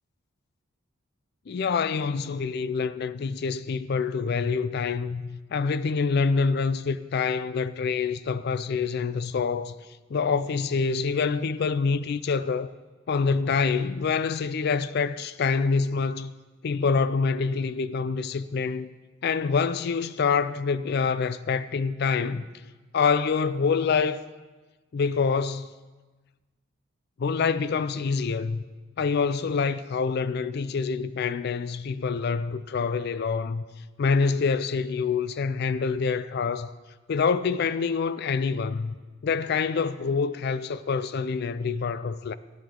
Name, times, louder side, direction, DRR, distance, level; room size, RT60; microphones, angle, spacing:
voice 1, 1.5-9.8 10.1-12.7 13.1-16.3 16.6-18.9 19.2-22.5 22.9-24.2 24.9-25.7 27.2-28.6 29.0-33.6 34.0-36.7 37.1-38.9 39.2-42.3, left 5 dB, 50° left, 0.4 m, -26 dB
13.5 x 10.0 x 3.8 m
head